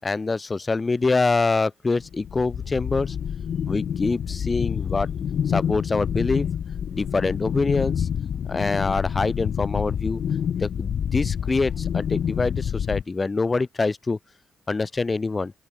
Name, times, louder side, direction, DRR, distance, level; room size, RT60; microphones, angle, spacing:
voice 1, 0.0-3.2 3.7-5.1 5.5-6.5 6.9-8.1 8.5-10.2 10.6-14.2 14.7-15.5, left 3 dB, 30° left, 6.2 m, -25 dB
sound 1, 2.0-13.0, left 8 dB, 55° left, 2.4 m, -28 dB
open air
figure-of-eight pair, 40°, 0 cm